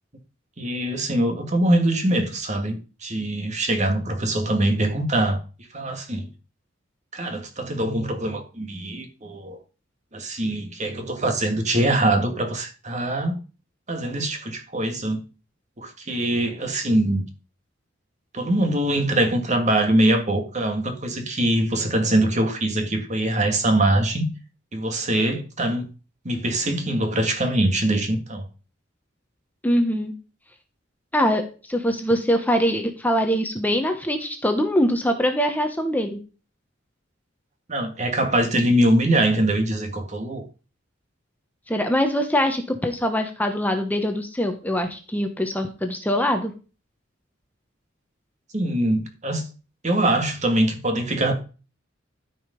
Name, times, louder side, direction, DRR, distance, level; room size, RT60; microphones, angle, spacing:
voice 1, 0.6-5.4 5.7-6.3 7.1-9.6 10.1-13.3 13.9-15.2 15.8-17.3 18.3-24.3 24.7-25.9 26.2-28.4 37.7-40.4 48.5-49.5 49.8-51.3, right 1 dB, 40° right, 2.1 m, -23 dB
voice 2, 29.6-30.1 31.1-36.2 41.7-46.5, equal, 10° left, 1.2 m, -23 dB
13.5 x 5.3 x 5.3 m
head